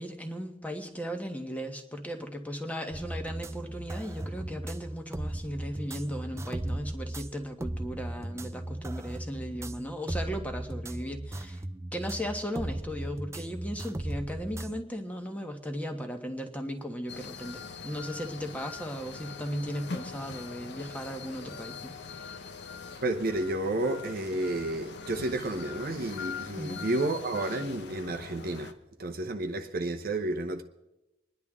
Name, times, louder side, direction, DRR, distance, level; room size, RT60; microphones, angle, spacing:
voice 1, 0.0-11.6 11.9-22.3 26.6-26.8, equal, 10° left, 1.2 m, -37 dB
sound 1, 2.9-14.8, right 1 dB, 15° right, 0.4 m, -37 dB
sound 2, 17.1-28.7, left 5 dB, 65° left, 0.9 m, -42 dB
voice 2, 23.0-28.7 29.0-30.6, right 2 dB, 50° right, 0.9 m, -31 dB
26.0 x 10.5 x 3.7 m
head